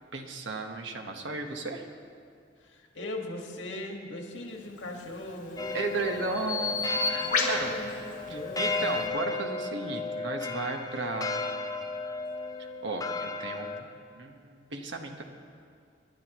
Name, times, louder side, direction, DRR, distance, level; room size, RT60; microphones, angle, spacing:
voice 1, 0.1-1.9 5.7-7.7 8.3-11.9 12.6-13.9 14.1-15.2, right 3 dB, 75° right, 3 dB, 1.3 m, -35 dB
voice 2, 2.6-6.8 7.2-9.0, left 1 dB, 85° left, 1 dB, 1.8 m, -40 dB
Bird vocalization bird call bird song, 4.9-9.1, left 3 dB, 45° left, 1.9 m, -33 dB
sound 1, 5.6-13.8, left 3 dB, 20° left, 0.6 m, -34 dB
27.0 x 11.0 x 3.1 m, 2.3 s
head